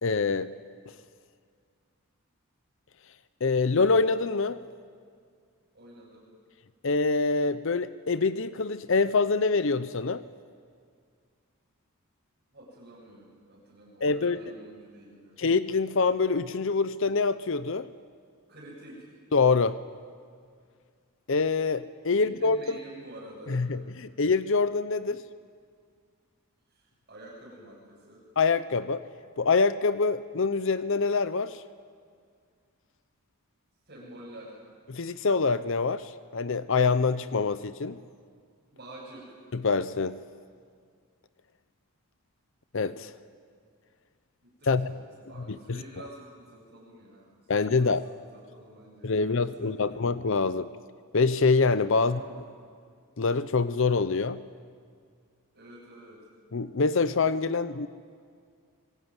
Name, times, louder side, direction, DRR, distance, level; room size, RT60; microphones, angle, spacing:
voice 1, 0.0-0.5 3.4-4.6 6.8-10.2 14.0-14.4 15.4-17.9 19.3-19.8 21.3-22.8 23.5-25.2 28.4-29.0 29.4-31.6 34.9-38.0 39.5-40.2 42.7-43.1 44.7-44.9 45.7-45.8 47.5-48.0 49.0-50.7 51.1-52.2 53.2-54.4 56.5-57.9, left 4 dB, 60° left, 14 dB, 0.7 m, -25 dB
voice 2, 5.7-6.2 12.5-15.4 18.5-19.1 22.1-23.7 25.0-25.2 26.7-28.2 33.9-34.6 38.7-39.3 44.4-47.9 48.3-49.3 49.6-50.1 52.0-52.4 55.5-56.2, right 1 dB, 50° right, -6 dB, 7.7 m, -48 dB
25.0 x 24.0 x 9.7 m, 2.1 s
head